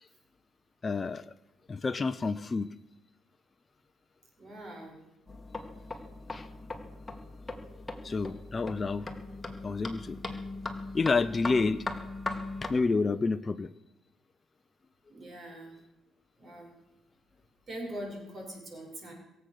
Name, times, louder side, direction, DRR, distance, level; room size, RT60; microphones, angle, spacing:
voice 1, 0.8-1.2 1.7-2.7 6.3-6.5 8.0-9.1 9.6-10.4 10.9-11.8 12.6-13.7, left 4 dB, 30° left, 11 dB, 0.6 m, -29 dB
voice 2, 4.4-5.0 15.1-15.8 16.4-16.7 17.7-19.1, right 1 dB, 45° right, 1 dB, 5.7 m, -42 dB
sound 1, 5.3-12.8, left 2 dB, 15° left, 2.0 m, -39 dB
22.5 x 7.9 x 6.6 m, 0.94 s
cardioid pair, 90°, 0 cm